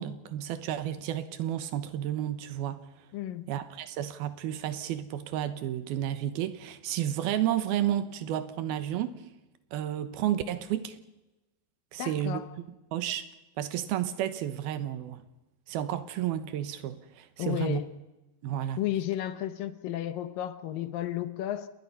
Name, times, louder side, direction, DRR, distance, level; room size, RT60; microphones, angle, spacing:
voice 1, 0.0-2.9 3.5-9.1 9.7-11.0 11.9-12.4 12.9-13.2 13.6-15.2 15.7-17.8 18.4-18.8, right 11 dB, 85° right, 3.1 m, -31 dB
voice 2, 3.1-3.5 12.0-12.5 17.4-17.9 18.8-21.7, left 12 dB, 75° left, 2.6 m, -33 dB
28.0 x 20.0 x 5.6 m
omnidirectional pair, 4.3 m